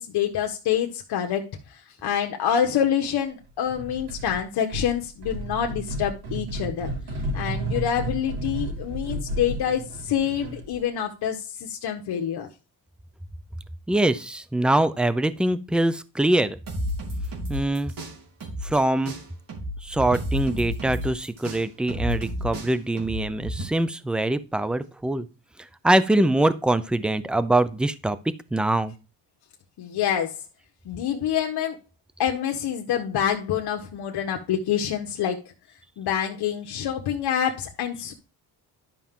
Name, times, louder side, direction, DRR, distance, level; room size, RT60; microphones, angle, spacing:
voice 1, 0.0-6.9 7.3-12.5 29.8-30.4 30.8-31.8 32.2-35.4 36.0-38.1, left 9 dB, 70° left, 3 dB, 1.3 m, -26 dB
sound 1, 3.7-4.4 4.7-10.7, right 1 dB, 75° right, 5.7 m, -32 dB
voice 2, 13.9-16.6 17.5-17.9 18.6-19.1 19.8-25.3 25.8-28.2 28.5-28.9, right 1 dB, ahead, 14 dB, 0.5 m, -23 dB
sound 2, 16.7-18.8 19.0-23.6, equal, 55° right, 3.5 m, -31 dB
11.5 x 5.8 x 3.7 m, 0.32 s
cardioid pair, 125°, 41 cm